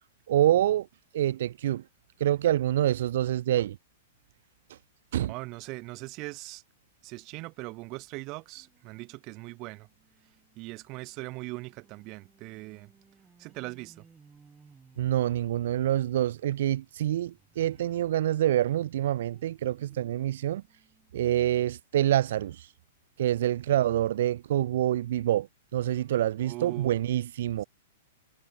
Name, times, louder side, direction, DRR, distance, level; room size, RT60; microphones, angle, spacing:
voice 1, 0.3-0.9 1.1-1.8 2.2-3.8 4.7-4.8 5.1-5.3 15.0-20.6 21.1-22.7 23.2-25.5 25.7-27.6, right 12 dB, 60° right, 0.3 m, -26 dB
voice 2, 5.3-6.6 7.0-9.9 10.6-12.9 13.4-14.0 26.4-26.9, right 24 dB, 30° right, 1.0 m, -40 dB
sound 1, 8.5-18.1 18.6-21.7 22.2-22.3 22.5-22.6, right 5 dB, 10° right, 1.5 m, -62 dB
supercardioid pair, 165°, 0 cm